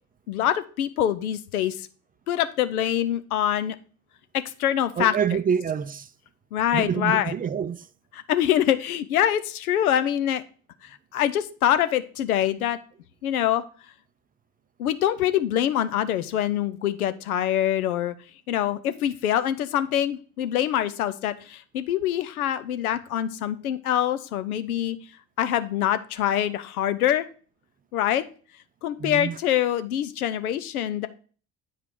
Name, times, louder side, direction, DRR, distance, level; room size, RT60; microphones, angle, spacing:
voice 1, 0.3-1.9 2.3-3.8 4.3-5.2 6.5-7.3 8.1-10.4 10.8-12.8 13.2-13.6 14.8-18.1 18.5-25.0 25.4-27.3 27.9-28.2 28.8-31.1, left 11 dB, 85° left, 0.6 m, -25 dB
voice 2, 5.0-6.1 6.7-7.9 29.0-29.4, right 7 dB, 20° right, 0.4 m, -26 dB
8.1 x 5.0 x 4.4 m
hypercardioid pair, 55°, 43 cm